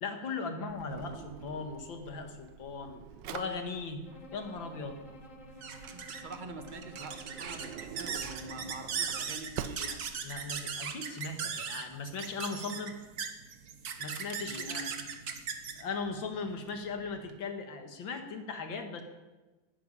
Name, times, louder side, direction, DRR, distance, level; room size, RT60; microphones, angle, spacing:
voice 1, 0.0-3.0 3.3-4.0 4.3-5.0 10.2-13.0 14.0-14.9 15.8-19.0, left 4 dB, 65° left, 6 dB, 2.4 m, -38 dB
Drawer open or close, 0.7-10.6, right 9 dB, 65° right, 1.3 m, -47 dB
Bowed string instrument, 4.0-9.5, equal, 40° left, 1.7 m, -52 dB
sound 1, 4.5-17.4, right 6 dB, 50° right, 1.5 m, -39 dB
voice 2, 5.9-10.1 14.4-15.1, right 2 dB, 30° right, 7 dB, 1.1 m, -45 dB
12.0 x 11.0 x 9.9 m, 1.2 s
omnidirectional pair, 2.3 m